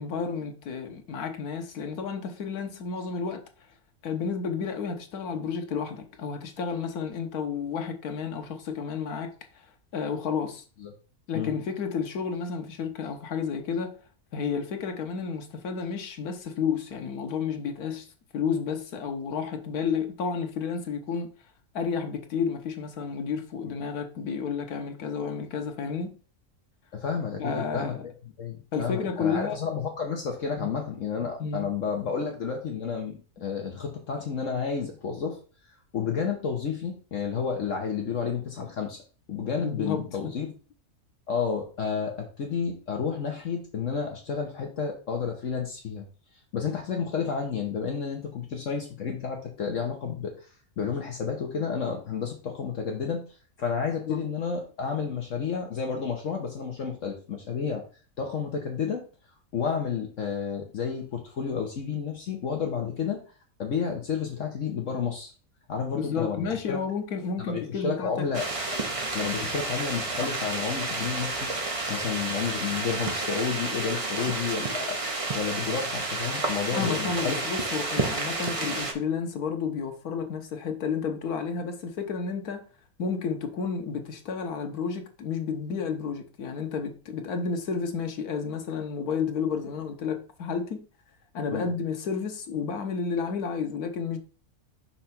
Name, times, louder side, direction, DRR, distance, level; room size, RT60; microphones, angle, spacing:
voice 1, 0.0-3.4 4.0-9.3 9.9-10.6 11.3-13.9 14.3-18.1 18.3-21.3 21.7-26.1 27.4-28.0 28.7-29.6 30.6-30.7 31.4-31.7 39.6-40.2 54.1-54.2 65.9-68.2 69.4-69.5 76.7-82.6 83.0-90.8 91.3-94.2, left 6 dB, 90° left, 1.5 m, -31 dB
voice 2, 26.9-28.1 28.4-35.4 35.9-39.0 39.3-40.5 41.3-46.1 46.5-53.2 53.6-57.8 58.2-59.0 59.5-63.2 63.6-65.3 65.7-66.8 67.4-68.8 69.1-71.5 71.9-77.4 91.5-91.7, left 6 dB, 60° left, 1.3 m, -31 dB
sound 1, 68.3-78.9, right 2 dB, 30° right, 0.8 m, -30 dB
5.8 x 3.2 x 5.8 m
omnidirectional pair, 1.5 m